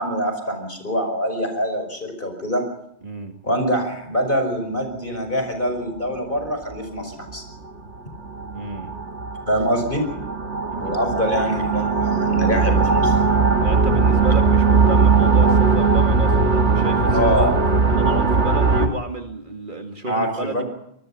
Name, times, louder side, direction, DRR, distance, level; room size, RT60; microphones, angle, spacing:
voice 1, 0.0-2.6 3.4-7.4 9.5-10.1 10.8-13.2 17.1-17.6 20.1-20.6, equal, 50° left, 6 dB, 5.5 m, -24 dB
voice 2, 3.0-3.3 8.5-9.0 10.7-11.0 13.6-17.5 17.9-20.6, right 3 dB, 50° right, 4 dB, 2.4 m, -31 dB
sound 1, 5.9-6.0 6.7-7.0 7.3-7.4 8.0-18.9, right 4 dB, 90° right, 2.0 m, -19 dB
25.0 x 20.0 x 5.8 m, 0.76 s
omnidirectional pair, 1.1 m